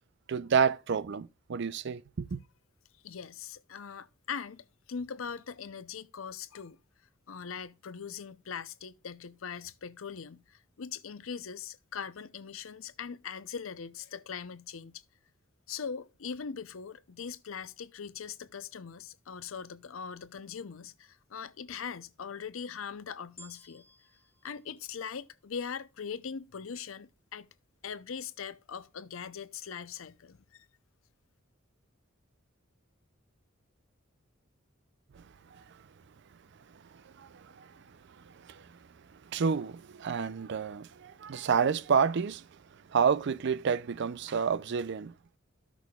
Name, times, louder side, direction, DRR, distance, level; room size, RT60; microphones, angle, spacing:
voice 1, 0.3-2.4 35.2-35.3 35.5-35.6 37.0-37.7 38.3-38.7 39.3-42.5 42.9-45.1, right 6 dB, 60° right, 0.5 m, -29 dB
voice 2, 3.0-6.8 7.3-15.0 15.7-23.8 24.4-27.5 27.8-30.7, left 6 dB, 85° left, 0.6 m, -41 dB
sound 1, 23.4-25.8 26.4-26.5, equal, 15° left, 1.3 m, -57 dB
14.0 x 6.1 x 2.3 m
head